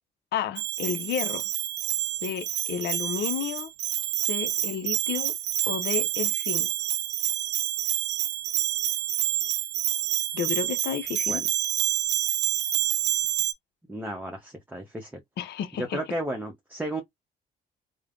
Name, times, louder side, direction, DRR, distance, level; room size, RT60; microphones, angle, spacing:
voice 1, 0.3-1.4 2.2-3.7 4.3-5.3 5.7-6.7 10.3-11.4 15.4-16.0, left 9 dB, 65° left, 0.5 m, -31 dB
Bell, 0.6-13.5, right 13 dB, 65° right, 0.4 m, -28 dB
voice 2, 13.9-15.2 15.8-17.0, right 1 dB, 10° right, 0.8 m, -33 dB
3.2 x 2.1 x 2.5 m
supercardioid pair, 65°, 19 cm